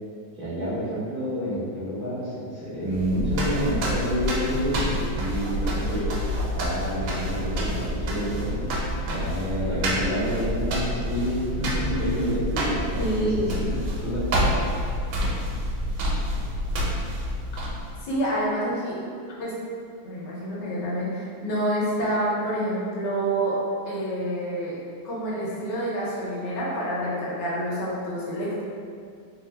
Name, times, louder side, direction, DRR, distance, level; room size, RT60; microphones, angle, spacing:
voice 1, 0.4-6.1 6.5-8.7 9.1-14.5, equal, 70° right, -12 dB, 0.4 m, -29 dB
sound 1, 2.9-18.0, equal, 90° right, 1.4 m, -28 dB
voice 2, 13.0-13.5 18.0-19.0 19.4-19.5 20.0-23.6 23.8-24.8 25.0-28.6, right 1 dB, 65° left, -6 dB, 1.3 m, -27 dB
3.3 x 2.0 x 3.2 m, 2.3 s
omnidirectional pair, 2.2 m